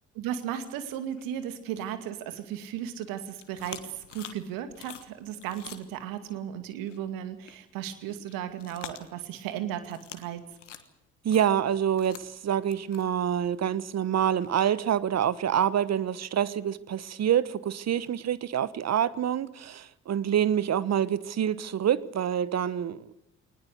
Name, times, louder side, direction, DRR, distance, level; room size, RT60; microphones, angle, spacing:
voice 1, 0.1-10.4, right 10 dB, 70° right, 2.4 m, -35 dB
sound 1, 1.1-2.8 3.1-6.4 6.8-7.0 7.4-7.6 7.8-9.5 9.8-10.3 10.5-14.6, left 9 dB, 85° left, 1.5 m, -46 dB
voice 2, 11.2-23.1, right 9 dB, 45° right, 1.1 m, -26 dB
20.5 x 19.5 x 8.0 m
figure-of-eight pair, 45°, 35 cm